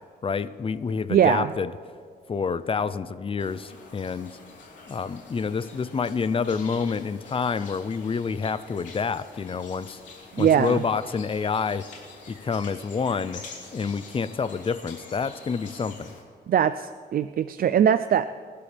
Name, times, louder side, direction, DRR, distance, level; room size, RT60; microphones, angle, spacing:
voice 1, 0.2-1.7 2.3-4.4 4.9-10.0 10.4-11.9 12.3-13.4 13.7-16.1, left 5 dB, 30° left, 14 dB, 0.5 m, -28 dB
voice 2, 1.1-1.5 10.3-10.8 16.5-18.3, right 9 dB, 55° right, 12 dB, 0.4 m, -21 dB
sound 1, 3.4-16.2, left 4 dB, 85° left, 3.6 m, -46 dB
25.5 x 11.5 x 3.4 m, 2.1 s
wide cardioid pair, 145°, 18 cm